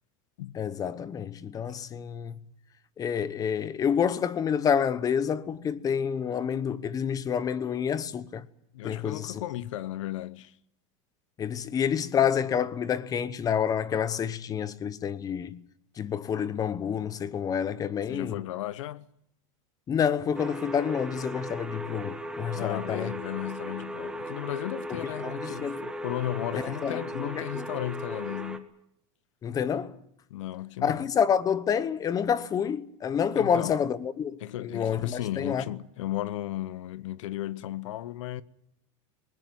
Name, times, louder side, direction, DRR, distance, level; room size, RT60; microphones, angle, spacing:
voice 1, 0.6-2.3 3.0-8.4 8.8-9.4 11.4-15.6 16.0-18.4 19.9-23.1 24.9-25.9 26.5-27.7 29.4-29.9 30.8-35.6, left 7 dB, 25° left, 1.0 m, -28 dB
voice 2, 8.7-10.5 18.1-19.0 22.5-28.7 30.3-31.1 33.3-33.9 34.4-38.4, left 14 dB, 85° left, 1.0 m, -35 dB
sound 1, 20.4-28.6, right 1 dB, 5° right, 1.6 m, -37 dB
20.0 x 19.5 x 9.4 m
supercardioid pair, 150°, 16 cm